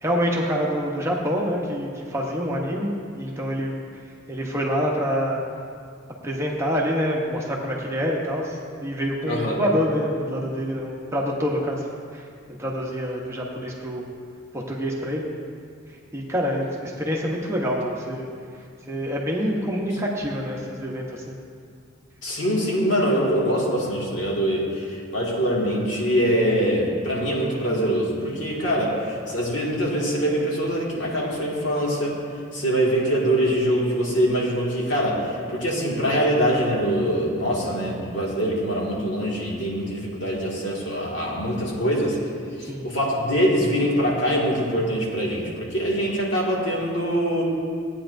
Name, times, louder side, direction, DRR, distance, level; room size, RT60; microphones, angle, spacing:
voice 1, 0.0-3.8 4.3-5.4 6.2-11.9 12.1-12.3 12.6-14.0 14.5-15.3 16.1-18.3 18.9-21.4 42.7-42.9, equal, 15° right, -2 dB, 0.8 m, -26 dB
voice 2, 9.3-9.6 22.2-32.2 32.5-42.2 42.6-47.4, equal, 65° left, -4 dB, 2.0 m, -23 dB
15.0 x 8.9 x 2.6 m, 2.3 s
head